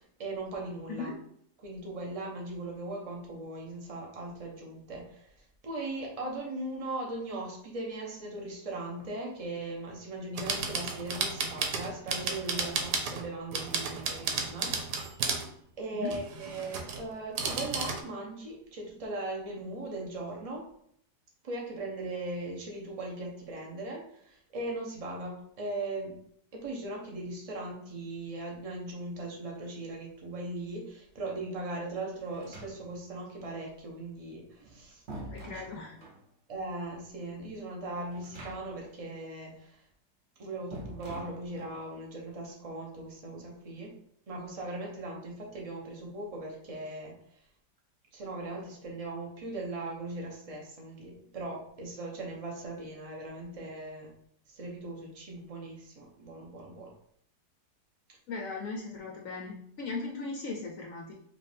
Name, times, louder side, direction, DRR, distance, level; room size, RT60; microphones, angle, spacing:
voice 1, 0.2-1.1 1.6-15.1 15.8-20.7 21.4-26.2 26.5-35.0 35.4-35.7 36.5-39.8 40.4-43.9 44.3-47.1 48.1-54.1 54.5-56.9, right 2 dB, 30° right, -1 dB, 0.8 m, -39 dB
sound 1, 10.4-13.2 13.5-15.5 16.1-17.0 17.4-18.0, right 5 dB, 90° right, 1.3 m, -33 dB
sound 2, 32.3-33.1 34.4-36.2 38.1-38.9 39.2-39.3 40.7-41.8, right 1 dB, 45° right, 1.0 m, -45 dB
voice 2, 35.3-36.0 58.3-61.1, left 3 dB, 65° left, 0 dB, 0.9 m, -38 dB
5.0 x 2.6 x 3.4 m, 0.68 s
omnidirectional pair, 1.7 m